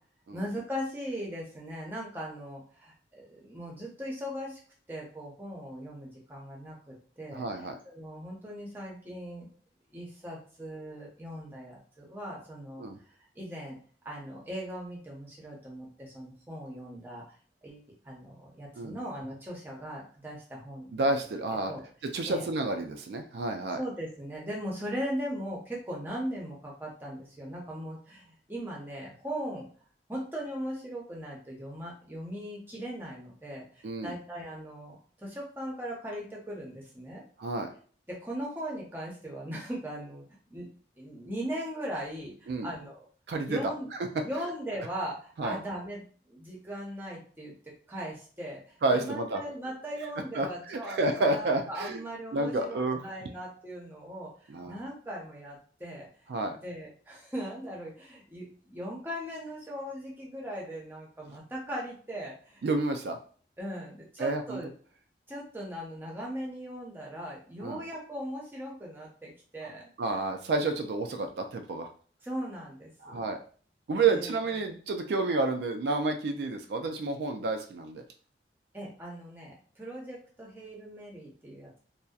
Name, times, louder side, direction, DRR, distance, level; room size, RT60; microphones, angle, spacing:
voice 1, 0.3-4.6 4.9-7.5 7.8-9.5 9.9-12.8 13.3-13.8 14.0-17.2 17.6-21.2 21.7-21.8 22.3-22.5 23.8-29.6 30.1-37.2 38.1-40.2 40.5-40.7 41.0-43.1 43.4-43.9 44.2-47.5 47.9-56.1 56.6-62.6 63.6-64.7 65.3-69.9 72.2-73.2 74.0-74.4 78.7-81.8, equal, 10° right, -3 dB, 0.6 m, -39 dB
voice 2, 7.3-7.8 12.8-13.0 18.8-19.0 20.9-21.7 22.0-23.8 33.8-34.1 37.4-37.7 42.5-42.7 43.3-43.6 45.4-45.6 48.8-49.4 50.0-50.1 50.3-52.0 52.3-53.1 54.5-54.8 56.3-56.6 62.6-63.2 64.2-64.6 67.6-67.8 70.0-71.9 73.0-73.4 73.9-78.0, right 3 dB, 70° right, 5 dB, 0.3 m, -30 dB
2.6 x 2.1 x 2.3 m, 0.43 s
head